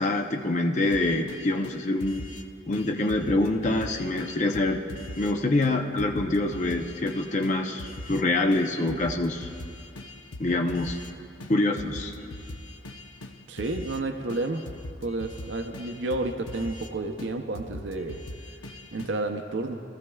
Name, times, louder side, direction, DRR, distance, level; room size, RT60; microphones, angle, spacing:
voice 1, 0.0-2.3 2.7-4.8 5.2-9.5 10.4-11.0 11.5-12.1, left 2 dB, 35° left, 4 dB, 0.6 m, -25 dB
sound 1, 0.9-2.4 2.7-5.3 5.6-5.7 6.0-8.2 8.5-11.1 11.4-14.0 14.3-16.9 17.2-19.2, left 1 dB, 85° left, 0.7 m, -41 dB
voice 2, 13.5-14.6 15.0-18.2 18.9-19.8, right 2 dB, 65° right, 4 dB, 0.6 m, -31 dB
20.5 x 14.0 x 2.3 m, 2.7 s
head